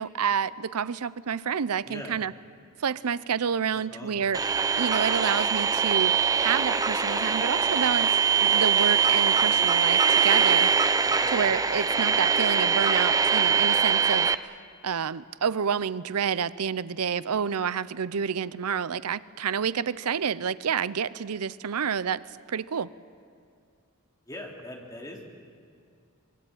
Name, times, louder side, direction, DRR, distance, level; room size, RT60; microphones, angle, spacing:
voice 1, 0.0-2.3 2.8-4.4 4.8-10.7 11.3-14.6 14.8-22.2 22.5-22.9, right 7 dB, 85° right, 18 dB, 0.6 m, -29 dB
voice 2, 1.8-2.2 3.7-4.1 11.0-11.4 24.3-25.2, left 1 dB, 15° left, -1 dB, 3.5 m, -42 dB
sound 1, 4.3-14.3, right 7 dB, 15° right, 0.5 m, -23 dB
25.0 x 21.5 x 9.0 m, 2.4 s
head